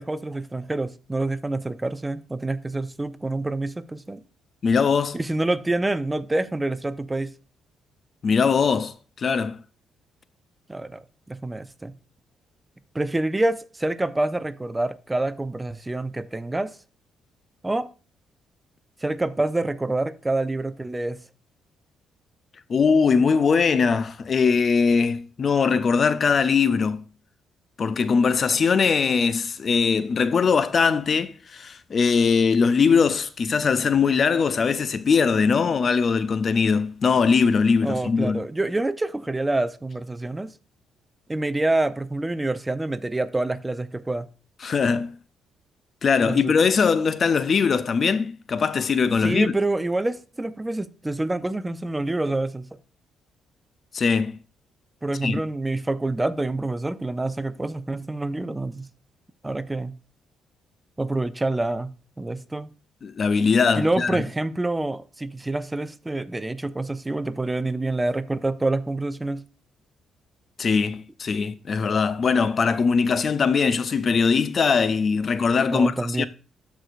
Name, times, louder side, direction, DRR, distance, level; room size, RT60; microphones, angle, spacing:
voice 1, 0.0-4.2 5.1-7.3 10.7-11.9 12.9-16.8 17.6-17.9 19.0-21.2 37.8-40.5 41.3-44.3 46.3-46.5 49.2-52.8 55.0-58.9 59.4-60.0 61.0-62.7 63.8-69.4 75.7-76.3, right 2 dB, 15° right, 0.5 m, -27 dB
voice 2, 4.6-5.2 8.2-9.6 22.7-27.0 27.8-38.4 44.6-45.1 46.0-49.5 53.9-54.4 55.2-55.4 63.0-64.2 70.6-76.3, left 5 dB, 45° left, 0.4 m, -21 dB
13.0 x 4.6 x 2.4 m
cardioid pair, 90°, 0 cm